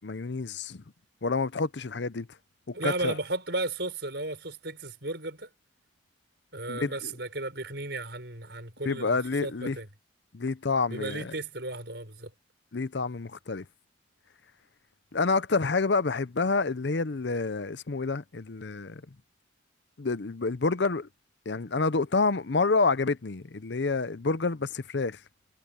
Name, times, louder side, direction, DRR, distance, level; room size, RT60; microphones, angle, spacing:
voice 1, 0.0-0.8 1.2-2.3 2.7-3.1 6.7-6.9 8.8-9.8 10.3-11.3 12.7-13.6 15.1-19.0 20.0-21.1 21.5-25.2, left 4 dB, 60° left, 0.7 m, -28 dB
voice 2, 2.7-5.5 6.5-9.9 10.9-12.3, right 2 dB, 55° right, 6.6 m, -34 dB
head